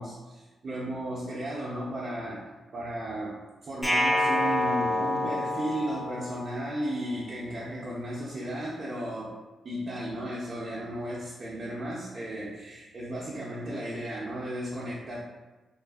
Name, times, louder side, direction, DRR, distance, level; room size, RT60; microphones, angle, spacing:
voice 1, 0.0-2.4 2.7-3.4 3.6-9.3 9.6-15.2, right 1 dB, 50° right, -7 dB, 0.5 m, -34 dB
sound 1, 3.8-6.9, left 1 dB, 20° left, 0.6 m, -27 dB
2.5 x 2.4 x 2.3 m, 1.2 s
supercardioid pair, 55°, 0 cm